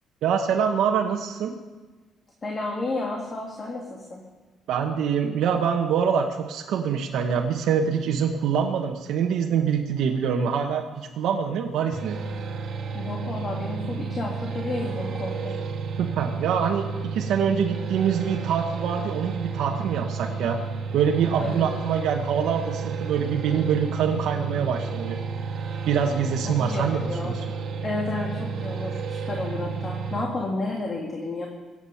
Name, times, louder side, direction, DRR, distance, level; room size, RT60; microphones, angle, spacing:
voice 1, 0.2-1.6 4.7-12.2 16.0-20.6 20.9-25.2 25.9-27.4, right 7 dB, 75° right, 1 dB, 1.2 m, -25 dB
voice 2, 2.4-4.2 12.9-15.6 21.4-21.8 26.4-27.4 27.8-31.5, left 2 dB, 25° left, 0 dB, 1.9 m, -31 dB
sound 1, 11.9-30.3, right 5 dB, 55° right, 1.8 m, -32 dB
22.5 x 8.9 x 5.7 m, 1.3 s
cardioid pair, 150°, 0 cm